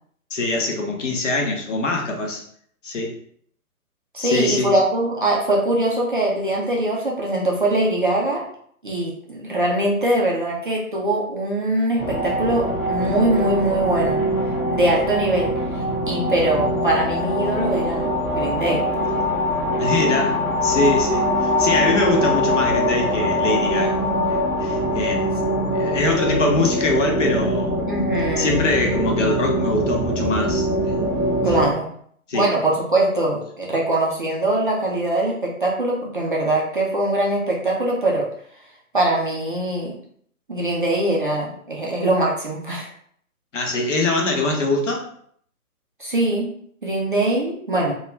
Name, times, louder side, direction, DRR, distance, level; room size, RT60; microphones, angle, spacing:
voice 1, 0.3-2.4 2.8-3.1 4.2-4.8 19.8-24.0 24.3-27.8 28.4-31.0 32.3-32.5 43.5-45.1, left 2 dB, 55° left, 1 dB, 0.7 m, -23 dB
voice 2, 4.1-8.4 8.8-14.2 14.7-18.8 27.9-28.5 31.4-31.9 32.3-38.3 38.9-39.9 40.5-42.9 46.0-46.5 46.8-47.9, right 1 dB, 40° right, -3 dB, 0.4 m, -22 dB
sound 1, 12.0-31.7, equal, 5° left, 0.9 m, -23 dB
2.3 x 2.3 x 3.1 m, 0.63 s
figure-of-eight pair, 130°, 44 cm